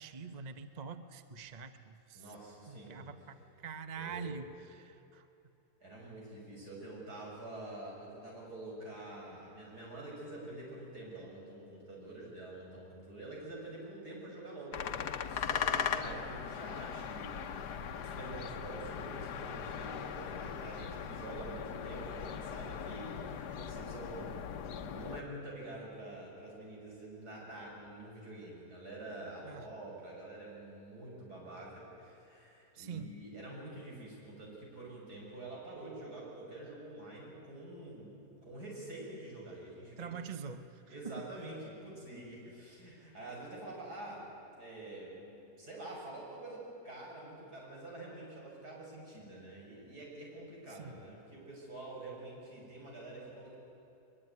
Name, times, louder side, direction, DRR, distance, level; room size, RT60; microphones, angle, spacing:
voice 1, 0.0-2.3 2.7-5.3 29.4-29.7 32.7-33.2 40.0-41.2 50.7-51.0, right 5 dB, 35° right, 9 dB, 0.9 m, -45 dB
voice 2, 2.1-3.1 4.0-4.3 5.8-14.8 15.3-40.1 40.9-44.3 44.6-53.5, right 2 dB, 75° right, -3 dB, 7.7 m, -47 dB
sound 1, 14.7-25.2, left 7 dB, 85° left, 1.6 m, -39 dB
22.5 x 22.5 x 9.7 m, 2.9 s
omnidirectional pair, 1.7 m